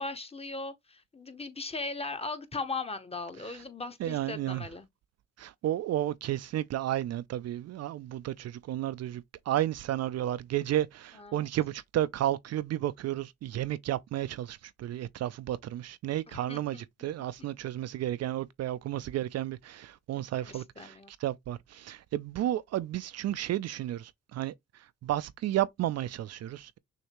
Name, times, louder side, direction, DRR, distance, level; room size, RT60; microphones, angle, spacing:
voice 1, 0.0-4.9 11.1-11.5 16.3-16.8 20.4-21.1, left 3 dB, 20° left, 0.9 m, -38 dB
voice 2, 4.0-4.6 5.4-24.5 25.0-26.8, right 13 dB, 60° right, 0.4 m, -32 dB
6.4 x 2.7 x 3.0 m
cardioid pair, 90°, 30 cm